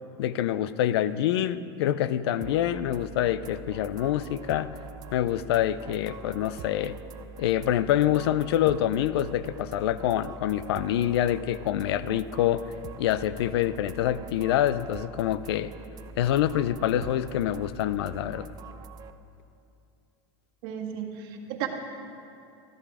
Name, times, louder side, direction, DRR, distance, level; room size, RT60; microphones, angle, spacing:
voice 1, 0.2-4.7 5.1-7.0 7.4-12.7 13.0-15.7 16.2-18.5, left 11 dB, 85° left, 15 dB, 0.5 m, -26 dB
sound 1, 2.4-19.1, right 5 dB, 30° right, 0.5 m, -44 dB
voice 2, 20.6-21.7, right 10 dB, 65° right, 1 dB, 1.7 m, -34 dB
14.0 x 9.9 x 4.9 m, 2.6 s
supercardioid pair, 145°, 13 cm